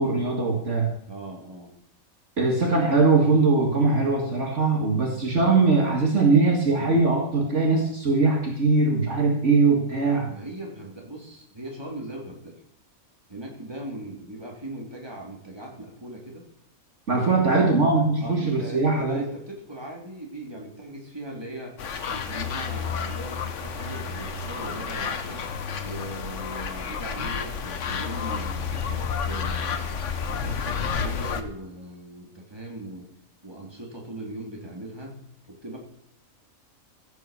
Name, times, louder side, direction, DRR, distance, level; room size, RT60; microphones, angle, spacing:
voice 1, 0.0-0.9 2.4-10.3 17.1-19.2, right 3 dB, 55° right, 1 dB, 2.3 m, -21 dB
voice 2, 1.1-1.7 10.3-12.6 13.3-16.4 17.2-17.7 18.2-21.8 22.1-25.5 25.8-29.8 30.3-33.1 33.4-35.2 35.5-35.8, right 1 dB, 15° right, -1 dB, 3.5 m, -39 dB
sound 1, 21.8-31.4, left 6 dB, 60° left, 1.4 m, -30 dB
15.5 x 7.9 x 6.9 m, 0.76 s
omnidirectional pair, 1.5 m